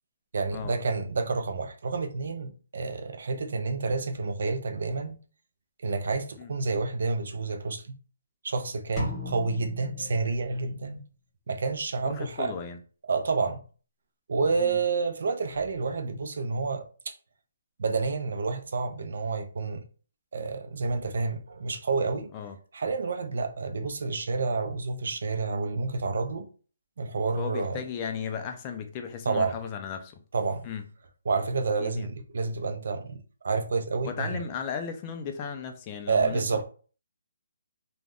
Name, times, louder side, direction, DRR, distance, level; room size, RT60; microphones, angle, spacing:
voice 1, 0.3-5.2 5.8-8.0 8.4-11.0 11.5-12.5 13.1-13.6 14.3-17.1 17.8-19.8 20.3-22.3 22.7-26.5 27.0-27.8 29.3-29.6 30.3-30.6 31.3-34.4 36.1-36.6, right 4 dB, 60° right, 0.5 m, -29 dB
sound 1, 9.0-10.9, left 3 dB, 5° left, 0.7 m, -37 dB
voice 2, 12.1-12.8 14.6-14.8 22.3-22.6 27.4-30.2 30.6-30.8 31.8-32.1 34.0-36.6, left 7 dB, 20° left, 0.3 m, -35 dB
2.4 x 2.1 x 3.4 m
hypercardioid pair, 165°, 0 cm